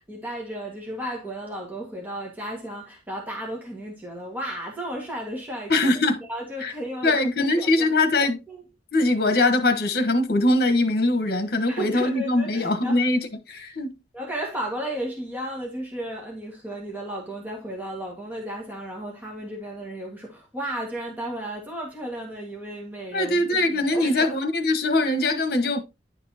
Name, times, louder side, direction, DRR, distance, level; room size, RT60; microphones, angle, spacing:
voice 1, 0.1-5.9 6.3-7.9 8.5-8.6 11.7-13.0 14.1-24.3, right 1 dB, 10° right, 1.7 m, -34 dB
voice 2, 5.7-6.2 6.6-6.7 7.0-8.4 8.9-14.0 23.1-25.8, left 2 dB, 60° left, 1.2 m, -22 dB
10.0 x 5.3 x 2.8 m
head